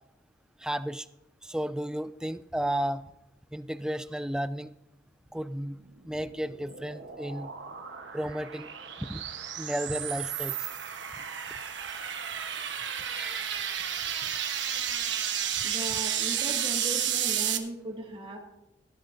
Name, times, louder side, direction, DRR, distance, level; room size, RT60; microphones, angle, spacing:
voice 1, 0.6-1.1 1.4-3.0 3.5-4.7 5.3-5.8 6.1-7.5 8.1-8.7 9.1-9.2 9.6-10.5 13.2-13.5 15.9-16.0, right 1 dB, 5° right, 13 dB, 0.3 m, -33 dB
sound 1, 5.9-17.6, right 9 dB, 75° right, 1.1 m, -32 dB
voice 2, 15.6-18.4, right 1 dB, 30° right, 1 dB, 2.0 m, -38 dB
18.0 x 13.0 x 2.7 m, 0.92 s
head